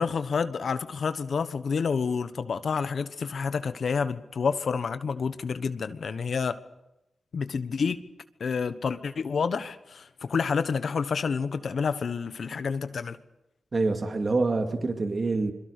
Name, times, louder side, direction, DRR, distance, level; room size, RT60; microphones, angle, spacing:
voice 1, 0.0-6.6 7.3-8.0 8.4-13.2, left 5 dB, 70° left, 1.2 m, -29 dB
voice 2, 13.7-15.5, right 3 dB, 50° right, 2.4 m, -26 dB
26.0 x 22.5 x 6.8 m
cardioid pair, 45°, 0 cm